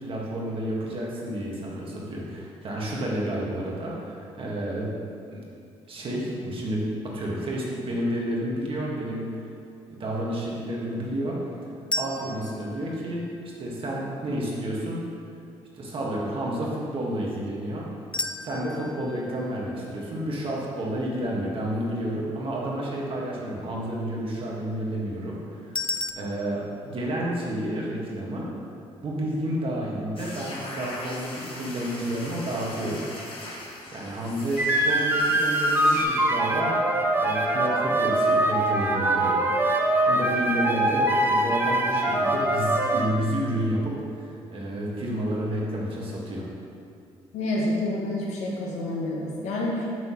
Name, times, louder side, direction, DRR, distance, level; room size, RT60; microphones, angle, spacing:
voice 1, 0.0-4.9 5.3-5.4 5.9-9.3 10.0-11.4 12.0-13.3 13.6-15.1 15.7-17.9 18.4-28.5 29.0-33.0 33.9-36.8 37.2-39.5 39.8-46.4, right 1 dB, 50° right, -4 dB, 1.8 m, -30 dB
sound 1, 11.9-14.0 18.1-21.2 25.8-26.1, left 2 dB, 10° left, 0.3 m, -35 dB
sound 2, 30.2-36.0, left 1 dB, 50° left, 1.4 m, -40 dB
sound 3, 34.6-43.1, right 1 dB, 20° right, 0.7 m, -23 dB
voice 2, 47.3-49.9, left 1 dB, 80° left, -3 dB, 1.4 m, -28 dB
6.2 x 4.0 x 6.3 m, 2.4 s
cardioid pair, 90°, 12 cm